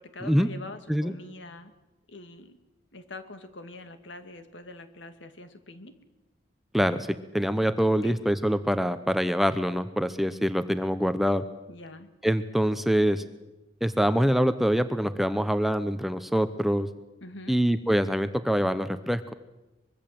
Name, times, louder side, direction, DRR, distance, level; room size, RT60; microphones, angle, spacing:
voice 1, 0.0-1.7 2.1-2.5 2.9-5.9 8.0-8.2 11.7-12.1 17.2-17.6, left 2 dB, 70° left, 8 dB, 2.2 m, -44 dB
voice 2, 6.7-11.4 12.2-13.2 13.8-16.9 17.5-19.3, equal, ahead, 10 dB, 0.8 m, -25 dB
24.0 x 22.5 x 7.7 m, 1.0 s
head